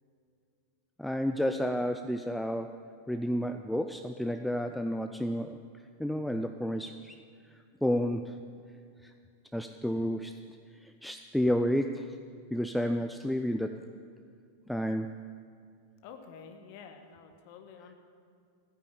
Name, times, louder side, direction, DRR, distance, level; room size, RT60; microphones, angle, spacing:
voice 1, 1.0-2.8 3.1-5.6 6.0-7.2 7.8-8.4 9.0-9.1 9.5-10.4 10.8-12.2 12.5-13.8 14.7-15.2, equal, ahead, 7 dB, 0.5 m, -31 dB
voice 2, 16.0-17.9, left 6 dB, 45° left, 6 dB, 1.6 m, -49 dB
14.0 x 9.9 x 8.7 m, 2.3 s
figure-of-eight pair, 90°, 0 cm